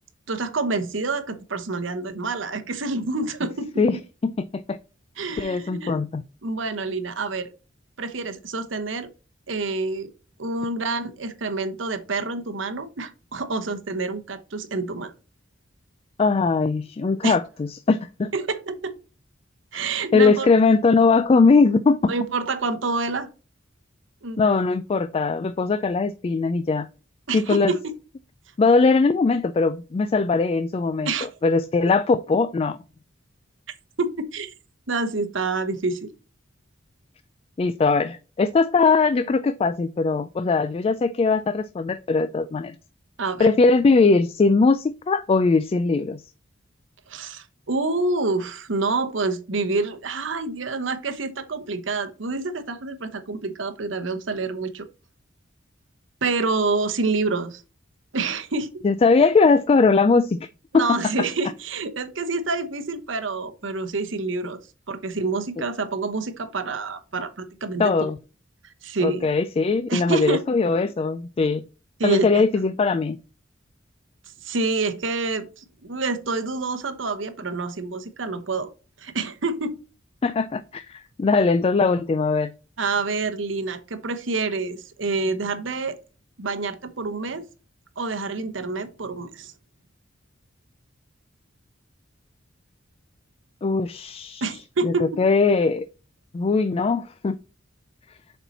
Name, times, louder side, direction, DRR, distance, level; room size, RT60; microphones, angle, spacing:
voice 1, 0.3-3.9 5.2-6.0 6.4-7.5 8.0-9.1 9.5-10.1 10.4-15.1 17.2-17.4 18.3-19.0 19.7-20.5 22.1-23.3 24.2-24.5 27.3-27.8 31.0-31.3 34.0-34.5 34.9-36.1 43.2-43.5 47.1-54.9 56.2-57.6 58.1-58.8 60.7-64.6 64.9-67.9 68.8-69.3 69.9-70.4 72.0-72.4 74.4-78.7 79.0-79.8 82.8-86.0 86.4-87.4 88.0-89.5 94.4-95.2, right 3 dB, 70° right, 0.9 m, -27 dB
voice 2, 5.4-6.2 16.2-18.3 19.7-19.8 20.1-22.1 24.4-26.9 27.3-27.7 28.6-32.8 37.6-42.8 43.4-46.2 58.8-60.4 60.7-61.0 67.8-68.2 69.0-71.6 72.0-73.2 80.2-82.5 93.6-95.9 96.3-97.4, left 4 dB, 30° left, 0.3 m, -20 dB
6.9 x 4.4 x 4.1 m
head